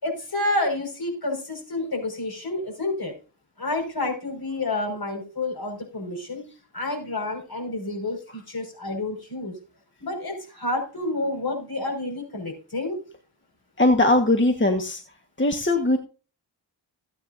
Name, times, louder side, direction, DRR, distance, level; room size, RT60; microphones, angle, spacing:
voice 1, 0.0-3.1 3.6-6.4 6.7-9.5 10.0-13.0, left 2 dB, 50° left, 3 dB, 5.6 m, -29 dB
voice 2, 13.8-15.0 15.4-16.0, left 2 dB, 25° left, 4 dB, 1.4 m, -20 dB
17.0 x 9.0 x 2.7 m, 0.35 s
cardioid pair, 70°, 47 cm